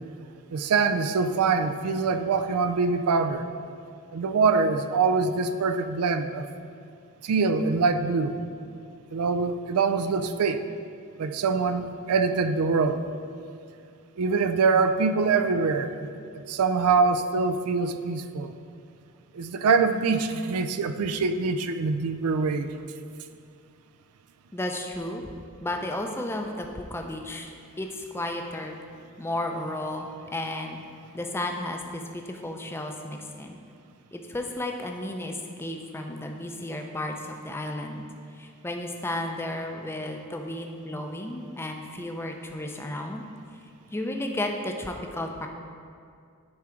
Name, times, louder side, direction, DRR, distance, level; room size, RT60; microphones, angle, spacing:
voice 1, 0.5-3.5 4.1-6.5 7.2-8.4 9.1-10.7 11.2-13.0 14.2-16.0 16.5-18.5 19.3-22.7, right 4 dB, 80° right, 9 dB, 0.4 m, -24 dB
voice 2, 24.5-25.3 25.6-28.8 29.2-30.8 31.1-33.6 34.1-38.0 38.4-43.2 43.9-45.5, left 1 dB, 10° left, 3 dB, 0.4 m, -33 dB
9.5 x 3.7 x 4.4 m, 2.3 s
head